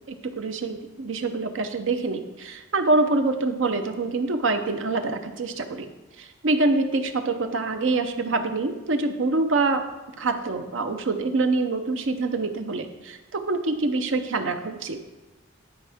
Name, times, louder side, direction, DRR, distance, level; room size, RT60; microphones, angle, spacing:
voice 1, 0.1-5.9 6.2-9.8 10.2-15.0, right 3 dB, 70° right, 7 dB, 0.7 m, -25 dB
11.0 x 4.6 x 3.5 m, 1.1 s
head